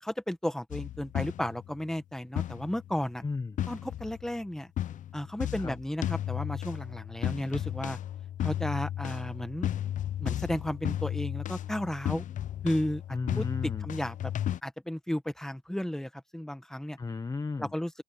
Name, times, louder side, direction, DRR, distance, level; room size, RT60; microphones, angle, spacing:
voice 1, 0.0-3.2 3.7-4.7 5.1-8.0 8.4-9.7 10.2-12.2 12.6-13.5 13.8-14.3 14.6-17.0 17.6-17.9, left 1 dB, 5° left, 1.7 m, -33 dB
sound 1, 0.7-1.8 2.4-3.0 3.6-4.4 4.8-14.6, left 11 dB, 50° left, 0.7 m, -34 dB
voice 2, 3.2-3.6 5.6-5.7 13.1-13.9 17.0-17.7, left 4 dB, 20° left, 1.1 m, -34 dB
cardioid pair, 110°, 17 cm